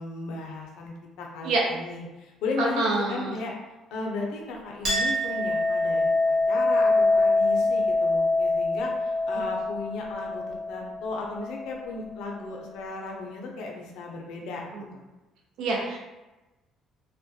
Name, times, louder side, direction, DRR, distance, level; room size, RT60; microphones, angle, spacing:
voice 1, 0.0-3.6 3.9-15.0, left 3 dB, 80° left, 0 dB, 0.5 m, -35 dB
voice 2, 2.8-3.4 7.8-7.9 9.4-9.5 14.7-14.9 15.6-16.0, right 3 dB, 75° right, -2 dB, 0.5 m, -27 dB
Chink clink, 4.8-11.9, left 2 dB, 45° right, 0.9 m, -25 dB
2.2 x 2.1 x 2.6 m, 1.1 s
cardioid pair, 160°, 0 cm